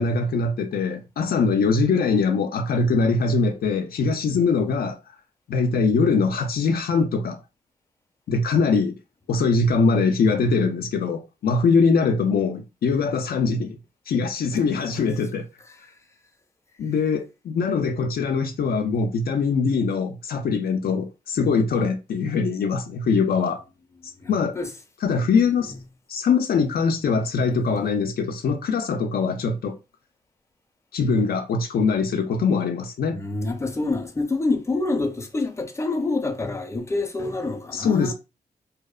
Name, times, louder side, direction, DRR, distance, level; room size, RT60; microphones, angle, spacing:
voice 1, 0.0-5.0 5.5-7.4 8.3-9.0 9.3-13.8 14.1-15.5 16.8-23.6 24.3-24.6 25.0-25.7 26.1-29.8 30.9-33.2 37.7-38.1, left 4 dB, 75° left, 0.4 m, -22 dB
voice 2, 24.2-24.7 33.1-38.1, left 3 dB, 15° left, 0.6 m, -27 dB
2.7 x 2.0 x 2.3 m
cardioid pair, 90°, 16 cm